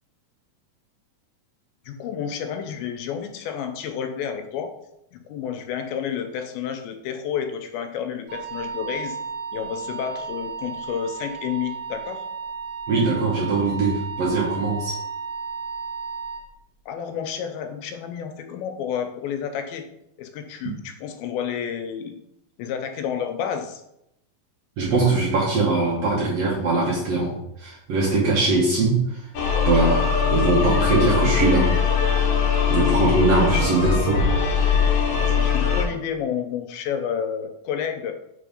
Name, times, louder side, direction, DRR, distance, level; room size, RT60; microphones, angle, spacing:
voice 1, 1.9-4.7 5.1-9.2 9.5-12.2 16.9-19.8 20.2-22.2 22.6-23.8 35.2-38.1, left 8 dB, 85° left, 6 dB, 2.4 m, -30 dB
Wind instrument woodwind instrument, 8.3-16.5, right 5 dB, 55° right, 1.4 m, -33 dB
voice 2, 12.9-15.0 24.8-27.3 27.6-29.2 29.6-31.7 32.7-34.3, right 3 dB, 70° right, -4 dB, 1.6 m, -21 dB
sound 1, 29.3-35.8, left 6 dB, 65° left, 2.0 m, -21 dB
5.2 x 3.8 x 5.0 m, 0.83 s
omnidirectional pair, 4.3 m